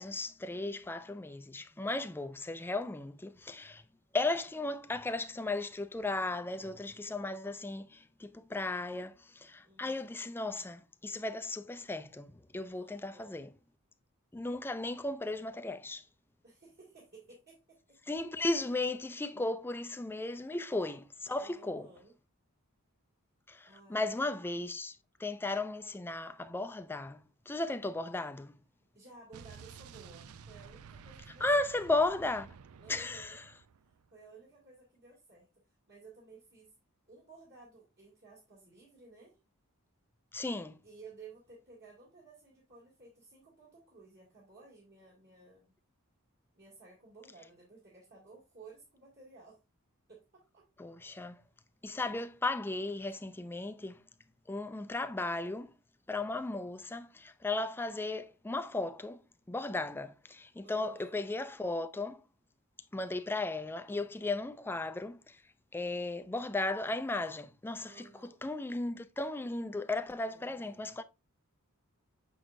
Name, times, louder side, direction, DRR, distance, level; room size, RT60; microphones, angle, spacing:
voice 1, 0.0-3.8 4.1-13.5 14.3-16.0 18.1-21.9 23.5-25.0 25.2-28.5 31.4-32.5 32.9-33.4 40.3-40.8 50.8-51.4 51.8-54.0 54.5-55.7 56.1-59.2 59.5-62.2 62.9-65.4 65.7-68.1 68.4-71.0, left 2 dB, 10° left, 0.3 m, -35 dB
voice 2, 9.6-10.2 12.7-13.3 16.4-17.8 21.4-22.1 23.6-24.4 28.9-31.7 32.8-33.4 34.1-35.5 35.9-36.7 37.1-39.4 40.8-45.7 46.6-49.6 50.1-50.6 60.6-61.2 67.8-68.4 70.0-70.9, right 4 dB, 50° right, 2.2 m, -56 dB
Explosion, 29.3-34.1, right 6 dB, 70° right, 0.4 m, -52 dB
6.2 x 6.1 x 2.5 m
head